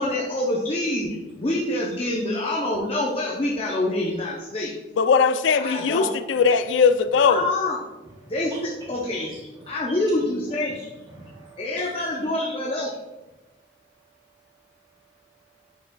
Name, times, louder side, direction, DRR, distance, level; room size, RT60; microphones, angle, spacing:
voice 1, 0.0-4.7 5.5-6.1 7.3-7.8 8.3-9.3 9.7-10.8 11.6-13.0, left 1 dB, 30° left, -3 dB, 0.6 m, -26 dB
voice 2, 5.0-7.5, left 5 dB, 80° left, 12 dB, 0.4 m, -19 dB
voice 3, 8.1-8.6 9.3-10.2 10.7-12.3, right 1 dB, 20° right, -3 dB, 0.6 m, -45 dB
9.6 x 4.8 x 2.3 m, 1.1 s
head